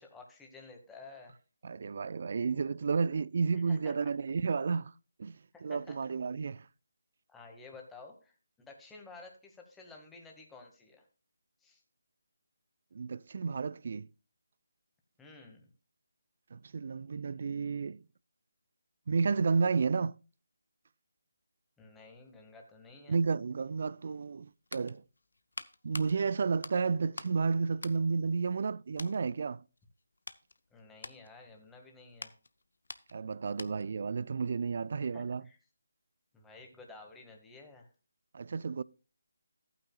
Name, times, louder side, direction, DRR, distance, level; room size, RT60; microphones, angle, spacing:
voice 1, 0.0-1.3 3.5-4.1 5.5-6.0 7.3-8.4 8.7-11.1 11.6-11.8 15.2-15.7 21.8-23.2 30.7-32.3 35.0-35.6 36.3-37.9, left 3 dB, 5° left, 1.9 m, -52 dB
voice 2, 1.6-4.9 5.2-6.7 12.9-14.1 16.5-18.0 19.1-20.1 23.1-25.0 25.8-29.6 33.1-35.4 38.3-38.8, right 5 dB, 50° right, 0.4 m, -32 dB
sound 1, 24.4-27.4 27.7-28.7 29.0-29.2 29.8-34.0 34.3-34.5, left 3 dB, 75° left, 0.8 m, -47 dB
14.0 x 9.0 x 2.4 m
figure-of-eight pair, 155°, 0 cm